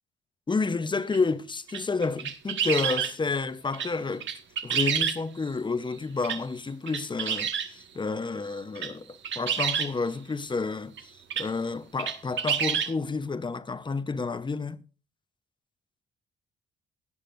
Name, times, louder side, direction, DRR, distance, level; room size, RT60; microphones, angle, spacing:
voice 1, 0.5-4.3 4.6-14.8, left 4 dB, 25° left, 0.8 m, -30 dB
sound 1, 1.1-1.2 1.7-3.1 3.7-3.9 4.2-5.5 6.2-6.4 6.9-7.7 8.5-8.9 9.2-9.9 11.0-11.1 11.3-11.5 12.0-12.9, right 8 dB, 65° right, 1.4 m, -28 dB
17.0 x 9.7 x 2.6 m
cardioid pair, 80°, 20 cm